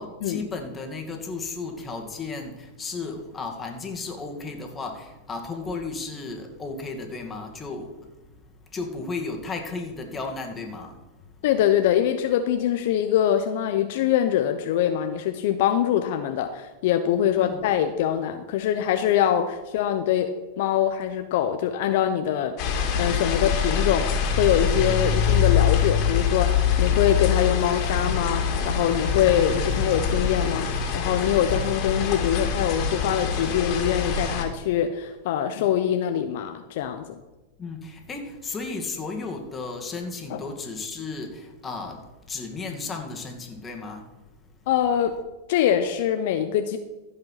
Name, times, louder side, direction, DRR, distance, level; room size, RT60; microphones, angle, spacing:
voice 1, 0.0-8.1 8.7-11.3 17.3-17.7 37.6-44.1, left 3 dB, 20° left, 2 dB, 2.3 m, -34 dB
voice 2, 11.4-22.5 23.0-37.2 40.3-40.4 44.7-45.2 45.5-46.8, left 10 dB, 65° left, 7 dB, 0.8 m, -24 dB
sound 1, 22.6-34.4, left 7 dB, 50° left, 2.6 m, -24 dB
15.0 x 5.5 x 5.8 m, 1.1 s
hypercardioid pair, 110°, 0 cm